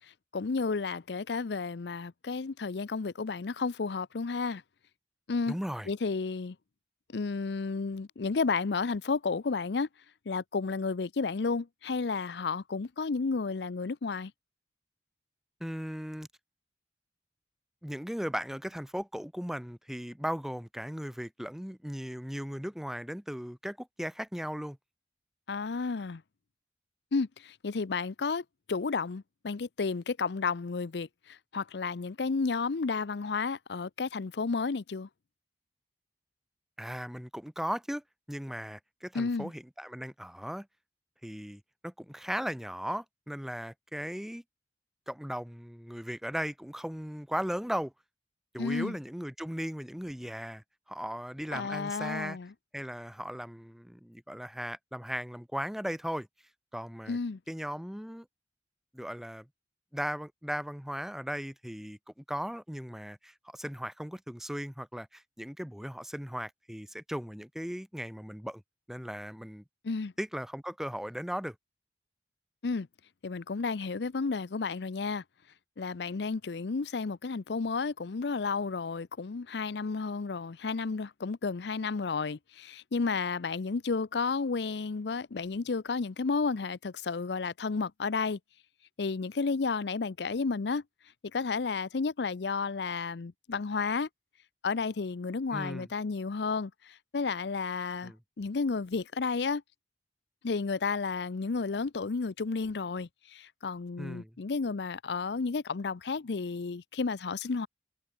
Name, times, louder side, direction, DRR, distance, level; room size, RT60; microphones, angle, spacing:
voice 1, 0.3-4.6 5.3-5.6 5.9-6.6 7.1-9.9 10.3-14.3 25.5-26.2 27.1-35.1 39.1-39.5 48.6-49.0 51.5-52.5 57.1-57.4 69.8-70.1 72.6-72.9 73.2-75.2 75.8-88.4 89.0-90.8 91.3-94.1 94.6-99.6 100.4-107.7, left 4 dB, 70° left, 0.6 m, -32 dB
voice 2, 5.5-5.9 15.6-16.3 17.8-24.8 36.8-40.7 41.2-44.4 45.1-47.9 48.5-52.4 52.7-56.3 56.7-57.2 57.5-58.3 58.9-59.5 59.9-62.0 62.3-68.6 68.9-69.6 70.2-71.6 95.5-95.9 98.0-98.2 104.0-104.3, equal, ahead, 0.7 m, -37 dB
head